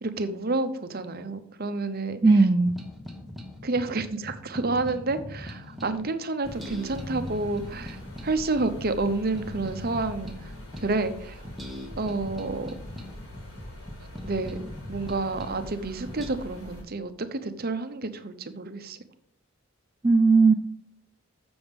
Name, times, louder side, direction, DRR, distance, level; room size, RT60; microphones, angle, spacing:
voice 1, 0.0-2.5 3.6-10.5 10.8-11.4 12.0-12.7 14.2-19.0, right 3 dB, 45° right, 10 dB, 0.8 m, -30 dB
voice 2, 2.2-2.7 20.0-20.5, right 3 dB, 20° right, 3 dB, 0.4 m, -17 dB
sound 1, 2.6-6.1 6.5-11.1 11.4-15.7 16.1-16.3, left 1 dB, ahead, 1.2 m, -40 dB
sound 2, 6.4-16.8, equal, 70° left, 4.2 m, -44 dB
7.0 x 7.0 x 5.3 m, 0.64 s
head